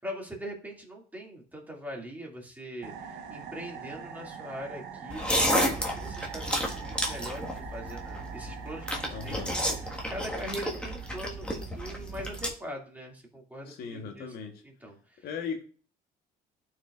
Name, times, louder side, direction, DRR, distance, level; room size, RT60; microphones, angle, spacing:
voice 1, 0.0-14.4 14.6-15.3, equal, 10° right, 2.2 m, -42 dB
sound 1, 2.8-11.6, right 6 dB, 80° right, 1.1 m, -44 dB
sound 2, 5.1-12.5, equal, 5° left, 1.5 m, -31 dB
voice 2, 9.1-9.5 13.7-14.6 15.2-15.6, left 6 dB, 65° left, 1.1 m, -37 dB
11.5 x 4.7 x 2.4 m
cardioid pair, 110°, 17 cm